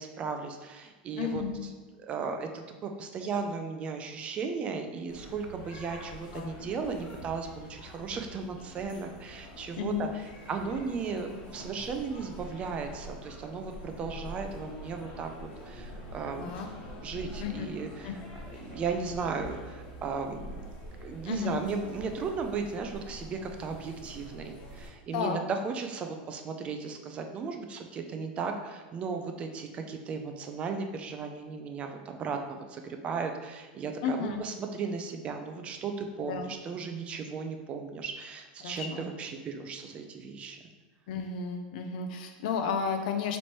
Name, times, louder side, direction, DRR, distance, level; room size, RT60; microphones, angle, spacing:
voice 1, 0.0-1.4 2.0-10.1 10.5-16.5 16.9-18.1 18.5-20.7 21.0-40.6, right 5 dB, 25° right, 5 dB, 0.3 m, -36 dB
voice 2, 1.2-1.6 6.3-6.5 9.8-10.1 16.4-16.7 17.4-17.7 18.0-18.1 21.3-21.6 25.1-25.4 34.0-34.4 36.2-36.5 38.6-39.1 41.1-43.4, left 6 dB, 65° left, 5 dB, 0.4 m, -32 dB
sound 1, 5.1-24.9, equal, 40° left, 1.1 m, -45 dB
3.1 x 2.9 x 4.3 m, 1.2 s
supercardioid pair, 150°, 5 cm